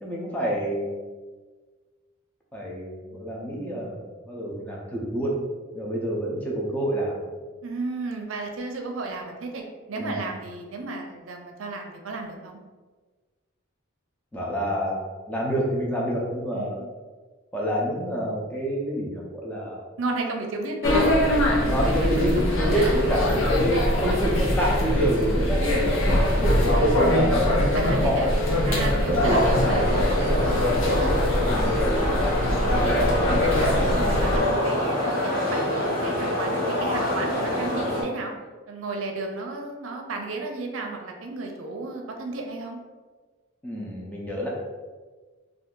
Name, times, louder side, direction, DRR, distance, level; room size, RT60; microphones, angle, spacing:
voice 1, 0.0-0.9 2.5-5.4 5.7-7.2 10.0-10.2 14.3-15.0 15.3-16.8 17.5-19.9 21.5-28.3 29.1-29.4 31.5-31.8 43.6-44.5, equal, 10° left, -3 dB, 0.5 m, -27 dB
voice 2, 7.6-9.6 9.9-12.6 16.5-16.9 20.0-21.1 21.7-23.4 27.7-28.4 28.6-31.9 32.4-33.0 33.3-38.3 38.7-42.8, right 3 dB, 80° right, 2 dB, 0.5 m, -33 dB
sound 1, 20.8-34.4, left 1 dB, 70° left, 0.7 m, -23 dB
sound 2, 29.2-38.0, left 1 dB, 45° left, 0.8 m, -26 dB
2.6 x 2.4 x 3.6 m, 1.4 s
head